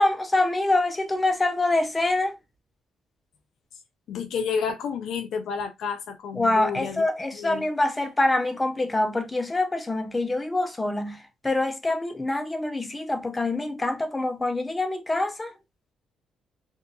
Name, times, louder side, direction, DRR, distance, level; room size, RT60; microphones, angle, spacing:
voice 1, 0.0-2.3 6.4-11.2 11.4-15.5, left 2 dB, 20° left, 0.6 m, -25 dB
voice 2, 4.1-7.1 7.3-7.7, left 6 dB, 75° left, 0.5 m, -30 dB
2.7 x 2.5 x 2.3 m
cardioid pair, 90°, 0 cm